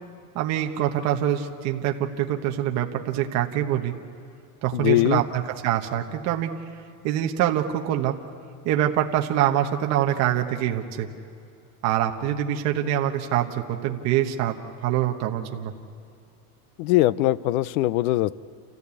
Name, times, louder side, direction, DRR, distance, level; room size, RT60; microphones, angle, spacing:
voice 1, 0.3-3.9 4.6-6.5 7.0-8.2 8.6-11.1 11.8-15.7, right 11 dB, 35° right, 3 dB, 1.1 m, -25 dB
voice 2, 4.7-5.2 16.8-18.4, left 16 dB, 70° left, 19 dB, 0.7 m, -21 dB
29.0 x 15.0 x 8.3 m, 2.5 s
supercardioid pair, 165°, 44 cm